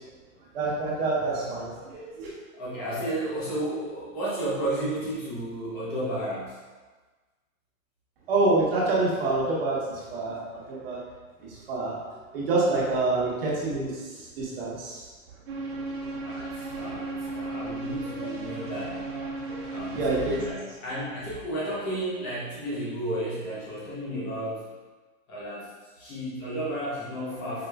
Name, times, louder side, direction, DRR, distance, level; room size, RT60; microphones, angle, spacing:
voice 1, 0.5-1.7 2.2-2.3 8.3-11.0 11.7-12.0 12.3-15.1 16.4-17.0 18.2-18.3 19.5-20.3, right 2 dB, 45° right, -5 dB, 1.0 m, -27 dB
voice 2, 1.2-1.5 2.5-6.6 16.2-19.0 19.7-24.6 25.3-25.7 26.0-27.7, right 1 dB, 15° left, -8 dB, 0.6 m, -33 dB
sound 1, 15.5-20.5, right 2 dB, 75° right, 1.1 m, -35 dB
4.9 x 2.9 x 2.2 m, 1.3 s
hypercardioid pair, 170°, 42 cm